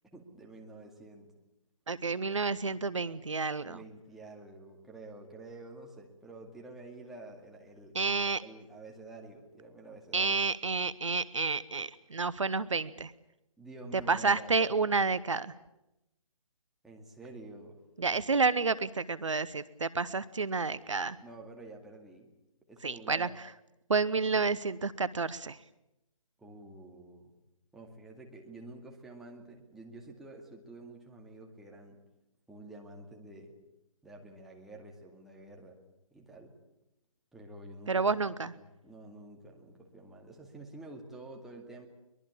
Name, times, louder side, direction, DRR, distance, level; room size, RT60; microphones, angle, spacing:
voice 1, 0.1-1.3 3.6-10.3 13.6-14.9 16.8-17.8 21.2-22.3 22.7-23.3 26.4-27.3 27.7-32.0 32.5-33.5 34.0-35.8 36.1-36.5 37.3-38.3 38.6-41.9, right 2 dB, ahead, -1 dB, 2.2 m, -49 dB
voice 2, 1.9-3.8 7.9-8.4 10.1-13.1 14.1-15.5 18.0-21.2 22.8-23.3 23.9-25.6 37.9-38.5, right 4 dB, 60° right, 17 dB, 0.9 m, -30 dB
23.0 x 21.5 x 8.6 m, 0.91 s
figure-of-eight pair, 140°, 18 cm